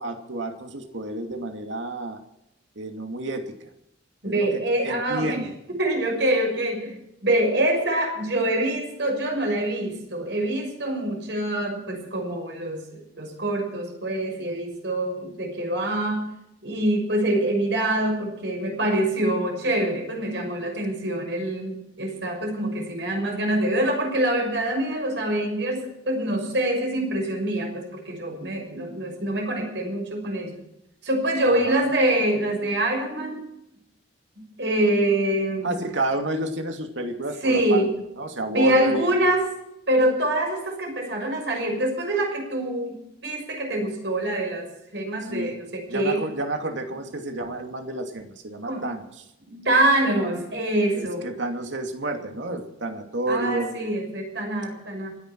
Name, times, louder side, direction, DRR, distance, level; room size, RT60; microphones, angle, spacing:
voice 1, 0.0-2.2 2.8-3.5 4.2-5.4 31.4-31.8 35.6-37.8 38.2-39.1 45.3-45.5 45.9-49.2 50.9-53.9, right 2 dB, 90° right, 5 dB, 2.5 m, -30 dB
voice 2, 4.2-16.3 16.6-30.5 31.0-33.5 34.4-35.9 37.4-37.9 38.5-39.5 39.9-46.2 48.6-48.8 49.4-51.3 53.3-55.1, right 1 dB, 70° right, 2 dB, 6.2 m, -25 dB
27.5 x 10.5 x 4.6 m, 0.84 s
head